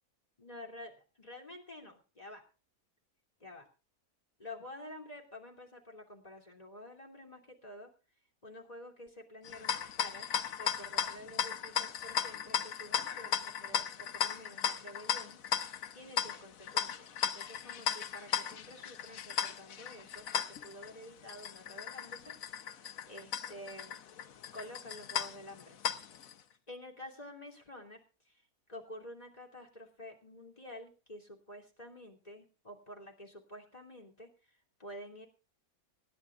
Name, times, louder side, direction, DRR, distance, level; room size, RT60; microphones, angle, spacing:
voice 1, 0.4-2.4 3.4-3.7 4.4-7.9 8.4-22.4 23.1-24.1 24.5-25.8 26.7-28.4 28.7-35.3, left 1 dB, 25° left, 2 dB, 3.0 m, -50 dB
sound 1, 9.4-26.3, left 9 dB, 70° left, 1.2 m, -36 dB
25.0 x 11.0 x 2.4 m, 0.35 s
omnidirectional pair, 1.5 m